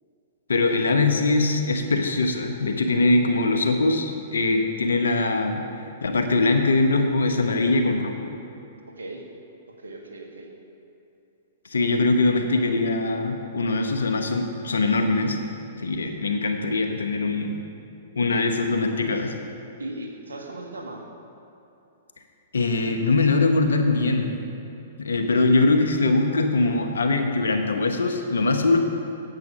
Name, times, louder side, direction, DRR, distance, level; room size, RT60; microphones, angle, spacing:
voice 1, 0.5-5.6 6.0-8.3 11.7-15.4 15.8-17.5 18.2-19.3 22.5-24.3 25.0-28.8, left 3 dB, 85° left, 5 dB, 1.0 m, -22 dB
voice 2, 8.9-9.3 9.8-10.6 16.0-16.2 19.1-19.3 19.8-21.1 25.3-25.5, right 2 dB, 90° right, 3 dB, 1.4 m, -38 dB
9.4 x 8.3 x 5.5 m, 2.8 s
hypercardioid pair, 120°, 0 cm